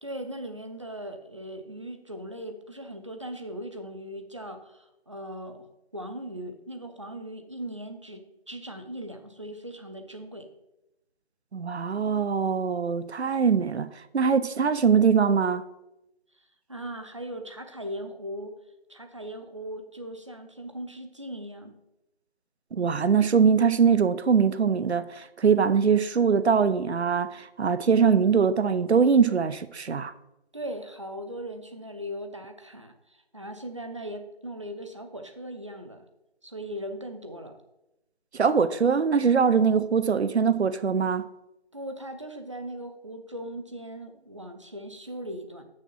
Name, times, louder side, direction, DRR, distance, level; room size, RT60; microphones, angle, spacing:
voice 1, 0.0-10.5 16.7-18.6 18.9-21.8 30.5-36.0 36.4-37.6 41.7-45.6, right 1 dB, 30° right, 0.6 m, -39 dB
voice 2, 11.5-15.6 22.7-30.1 38.3-41.3, right 6 dB, 90° right, 0.6 m, -22 dB
6.5 x 6.1 x 5.5 m
figure-of-eight pair, 165°, 32 cm